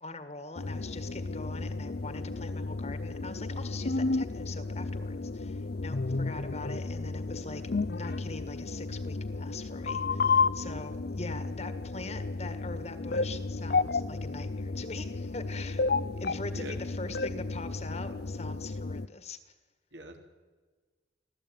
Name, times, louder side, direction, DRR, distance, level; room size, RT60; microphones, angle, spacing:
voice 1, 0.0-15.9 16.2-19.5, left 3 dB, 35° left, 10 dB, 1.6 m, -43 dB
sound 1, 0.6-19.1, left 3 dB, 55° left, 0.6 m, -32 dB
voice 2, 10.5-10.7 16.5-16.8 19.9-20.2, right 1 dB, 75° right, 3 dB, 3.4 m, -44 dB
24.5 x 15.5 x 9.2 m, 1.4 s
head